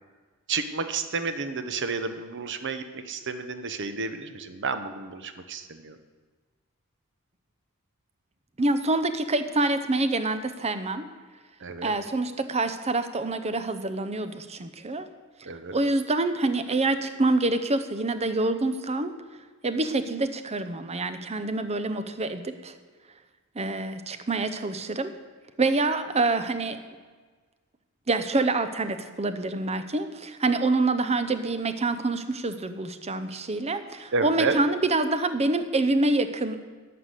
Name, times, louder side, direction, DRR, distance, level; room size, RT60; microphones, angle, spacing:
voice 1, 0.5-6.0 11.6-11.9 15.4-15.7 34.1-34.6, right 4 dB, 55° right, 9 dB, 0.9 m, -31 dB
voice 2, 8.6-11.1 11.8-15.1 15.7-19.1 19.6-22.7 23.5-25.1 25.6-26.8 28.1-36.6, right 2 dB, 30° right, 10 dB, 0.7 m, -26 dB
11.5 x 6.0 x 8.1 m, 1.4 s
head